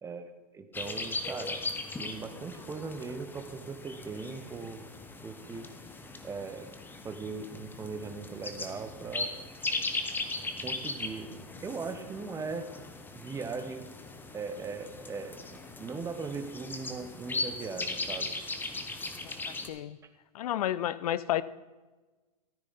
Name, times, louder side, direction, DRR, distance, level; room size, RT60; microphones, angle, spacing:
voice 1, 0.0-1.6 2.0-4.8 5.2-5.7 6.2-6.7 7.0-9.3 10.6-12.7 13.1-13.9 14.3-18.3, right 4 dB, 15° right, 8 dB, 1.0 m, -39 dB
sound 1, 0.7-19.7, left 3 dB, 10° left, 0.9 m, -38 dB
voice 2, 20.3-21.4, left 12 dB, 65° left, 17 dB, 0.6 m, -31 dB
13.5 x 9.6 x 4.1 m, 1.3 s
hypercardioid pair, 115°, 20 cm